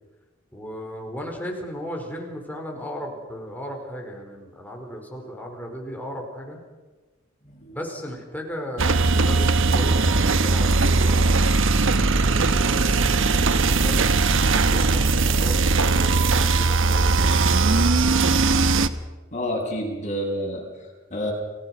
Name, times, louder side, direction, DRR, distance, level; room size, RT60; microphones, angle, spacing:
voice 1, 0.5-6.6 7.7-11.2 12.1-17.7, equal, 10° left, 1 dB, 4.9 m, -36 dB
sound 1, 8.8-18.9, right 3 dB, 65° right, 1.2 m, -19 dB
voice 2, 19.3-21.3, equal, 35° left, 0 dB, 7.3 m, -29 dB
30.0 x 18.5 x 6.1 m, 1.2 s
head